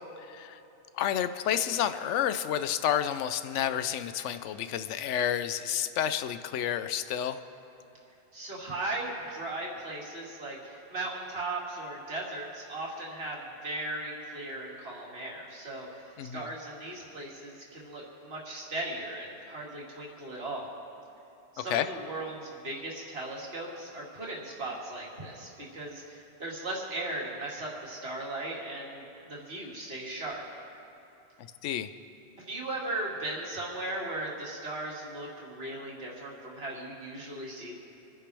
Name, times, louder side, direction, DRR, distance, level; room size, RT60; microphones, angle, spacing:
voice 1, 0.2-0.6 0.9-7.4 16.2-16.5 21.7-21.9 31.6-31.9, left 10 dB, 85° left, 11 dB, 0.9 m, -30 dB
voice 2, 8.3-20.7 21.5-30.4 32.4-37.8, right 2 dB, 55° right, -4 dB, 2.6 m, -37 dB
27.5 x 10.5 x 3.4 m, 2.9 s
omnidirectional pair, 1.2 m